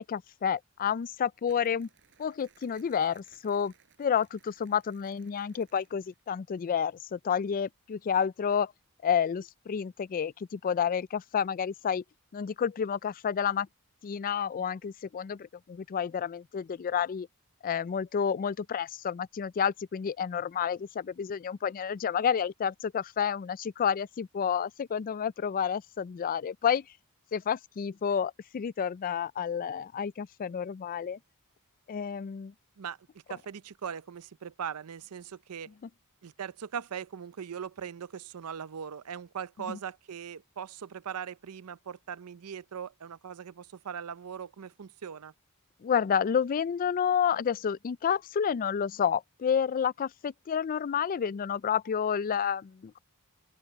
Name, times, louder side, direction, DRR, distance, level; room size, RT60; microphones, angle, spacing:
voice 1, 0.0-1.9 2.2-3.7 4.0-8.7 9.0-12.0 12.3-13.7 14.0-17.3 17.6-26.8 27.3-31.2 31.9-32.5 39.7-39.8 45.8-53.0, left 7 dB, 40° left, 0.3 m, -30 dB
Crumpling crinkling, 1.4-6.3, right 7 dB, 55° right, 5.6 m, -64 dB
voice 2, 33.3-35.7 36.2-45.3, right 7 dB, 85° right, 0.5 m, -40 dB
open air
head